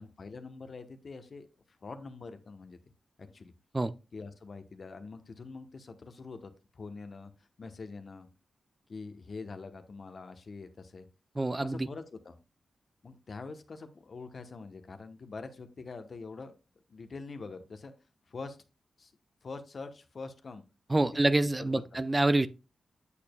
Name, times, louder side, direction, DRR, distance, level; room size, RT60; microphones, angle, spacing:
voice 1, 0.0-1.5 1.8-2.8 3.2-3.5 4.1-7.3 7.6-8.3 8.9-11.1 11.6-12.4 13.0-16.5 16.9-17.9 18.3-18.6 19.0-19.1 19.4-20.6 21.2-22.0, left 4 dB, 55° left, 1.0 m, -44 dB
voice 2, 11.4-11.9 20.9-22.5, right 2 dB, 25° right, 0.4 m, -26 dB
8.4 x 6.7 x 2.3 m
cardioid pair, 60°, 0 cm